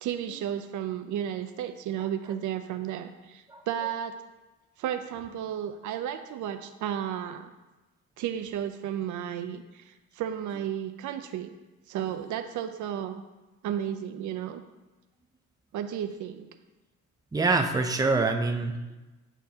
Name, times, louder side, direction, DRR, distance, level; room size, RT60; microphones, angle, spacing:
voice 1, 0.0-4.2 4.8-7.5 8.2-11.5 11.9-13.2 13.6-14.6 15.7-16.5, right 10 dB, 75° right, 7 dB, 0.5 m, -33 dB
voice 2, 17.3-19.0, right 3 dB, 10° right, 4 dB, 0.6 m, -25 dB
9.0 x 4.5 x 2.8 m, 1.1 s
cardioid pair, 90°, 30 cm